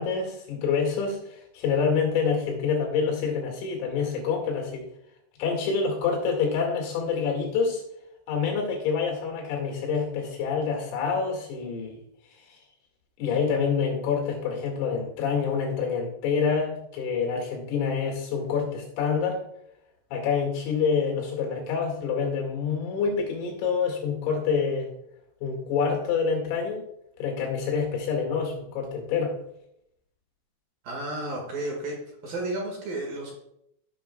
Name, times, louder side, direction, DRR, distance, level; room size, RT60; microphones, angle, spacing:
voice 1, 0.0-4.9 5.4-7.8 8.3-12.0 13.2-19.4 20.1-24.9 25.4-26.8 27.2-29.3, left 5 dB, 85° left, 1 dB, 4.8 m, -27 dB
voice 2, 30.8-33.4, right 2 dB, 55° right, -1 dB, 2.8 m, -32 dB
15.5 x 7.3 x 2.3 m, 0.76 s
omnidirectional pair, 5.8 m